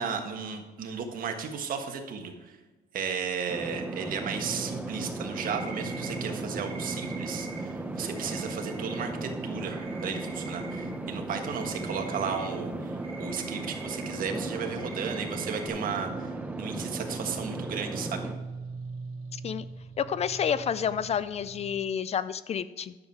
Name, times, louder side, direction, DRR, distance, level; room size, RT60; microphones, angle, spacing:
voice 1, 0.0-2.6 2.9-18.3, right 6 dB, 55° right, 4 dB, 1.5 m, -34 dB
sound 1, 3.5-18.4, right 2 dB, 10° right, 0.7 m, -36 dB
sound 2, 4.2-21.7, right 3 dB, 90° right, 2.5 m, -45 dB
sound 3, 5.3-6.2 6.6-9.1 9.4-10.9 11.1-15.7, right 5 dB, 30° right, 3.7 m, -46 dB
voice 2, 19.3-19.6 20.0-22.9, left 8 dB, 40° left, 16 dB, 0.4 m, -29 dB
10.5 x 7.2 x 4.7 m, 1.3 s
cardioid pair, 110°, 17 cm